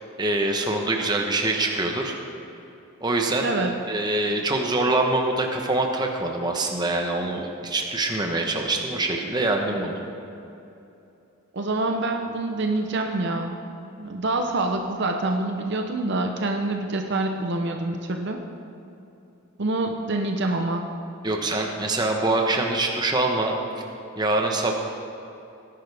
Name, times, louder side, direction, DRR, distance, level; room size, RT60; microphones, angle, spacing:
voice 1, 0.2-2.2 3.0-3.5 3.9-10.0 21.2-23.5 24.2-24.7, right 2 dB, 20° right, 2 dB, 1.0 m, -24 dB
voice 2, 11.5-13.5 14.0-18.4 19.6-20.9, right 2 dB, 55° right, 3 dB, 0.7 m, -26 dB
17.5 x 10.5 x 3.5 m, 2.8 s
head